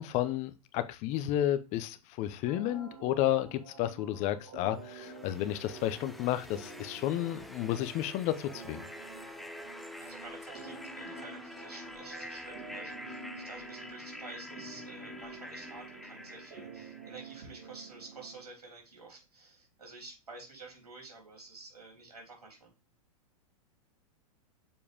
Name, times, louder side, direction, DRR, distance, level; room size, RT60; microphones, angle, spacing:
voice 1, 0.0-8.8, left 13 dB, 40° left, 0.8 m, -32 dB
sound 1, 2.5-18.5, right 4 dB, 55° right, 4.1 m, -49 dB
sound 2, 4.8-17.7, left 1 dB, ahead, 0.6 m, -47 dB
voice 2, 10.0-22.7, right 3 dB, 85° right, 3.2 m, -50 dB
7.1 x 4.7 x 3.6 m
figure-of-eight pair, 100°, 19 cm